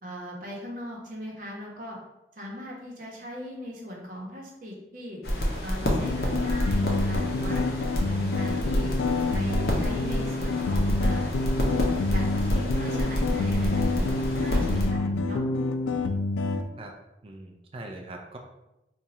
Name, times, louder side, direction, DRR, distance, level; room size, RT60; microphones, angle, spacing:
voice 1, 0.0-2.0 2.4-5.2 5.6-7.7 8.0-8.9 9.3-11.3 12.1-15.4, left 1 dB, 50° right, -3 dB, 0.9 m, -38 dB
sound 1, 5.2-14.9, equal, 60° left, 0.7 m, -28 dB
sound 2, 6.0-16.6, left 3 dB, 85° left, 0.3 m, -28 dB
voice 2, 17.2-18.4, right 2 dB, 30° right, 2 dB, 0.4 m, -41 dB
2.8 x 2.3 x 4.1 m, 0.93 s
head